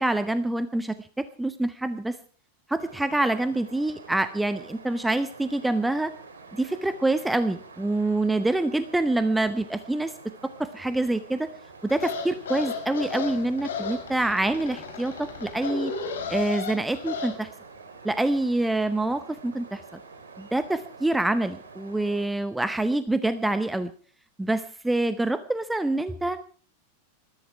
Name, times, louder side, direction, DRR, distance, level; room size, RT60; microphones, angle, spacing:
voice 1, 0.0-2.2 2.7-6.1 6.5-10.1 10.6-11.5 11.8-15.9 16.3-17.5 18.0-19.8 20.4-23.9 24.4-26.4, right 2 dB, 5° right, 12 dB, 0.8 m, -26 dB
sound 1, 2.8-22.3, right 4 dB, 65° right, 3.3 m, -47 dB
sound 2, 11.9-17.3, left 5 dB, 65° left, 4.2 m, -34 dB
20.5 x 14.0 x 4.7 m, 0.43 s
figure-of-eight pair, 90°, 0 cm